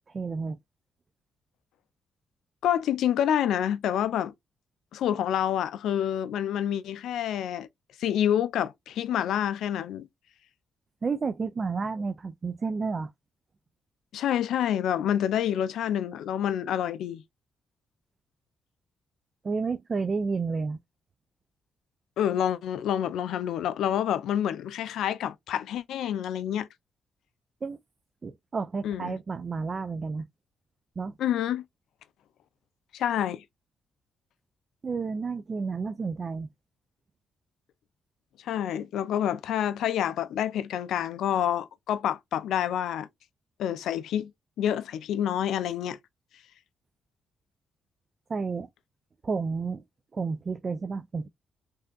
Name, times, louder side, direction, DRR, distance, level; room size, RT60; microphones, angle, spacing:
voice 1, 0.1-0.6 11.0-13.1 19.4-20.8 27.6-27.8 28.2-30.3 31.0-31.1 34.8-36.5 48.3-48.7 49.2-49.8 50.1-51.3, right 4 dB, 45° right, 0.4 m, -31 dB
voice 2, 2.6-4.3 4.9-7.7 8.0-10.1 14.1-17.2 22.2-26.7 28.8-29.1 31.2-31.6 32.9-33.4 38.4-43.1 43.6-44.3 44.6-46.0, left 10 dB, 75° left, 0.3 m, -28 dB
3.3 x 2.7 x 2.3 m
hypercardioid pair, 50°, 0 cm